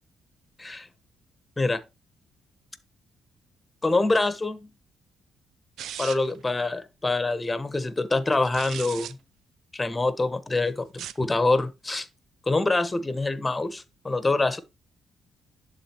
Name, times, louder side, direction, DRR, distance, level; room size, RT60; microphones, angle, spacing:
voice 1, 3.8-4.7 6.0-9.2 9.7-12.1 12.5-14.6, left 2 dB, 20° left, 1.0 m, -25 dB
sound 1, 5.8-6.4 8.3-9.1 10.8-11.3, right 11 dB, 75° right, 0.3 m, -38 dB
11.5 x 3.9 x 3.0 m
supercardioid pair, 60°, 0 cm